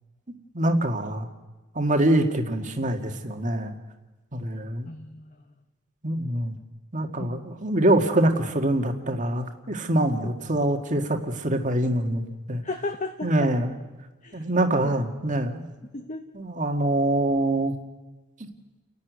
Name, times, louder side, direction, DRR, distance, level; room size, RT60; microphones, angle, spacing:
voice 1, 0.5-1.3 1.7-3.8 4.3-4.9 6.0-6.6 6.9-12.2 12.5-12.6 13.2-13.8 14.3-15.6 16.3-17.7, right 1 dB, 35° right, 5 dB, 1.9 m, -24 dB
voice 2, 4.9-5.3 7.2-7.4 10.2-10.3 12.6-13.5 14.2-14.5 14.8-14.9 15.9-16.2, left 2 dB, 35° left, 6 dB, 1.0 m, -34 dB
30.0 x 11.5 x 9.4 m, 1.2 s
head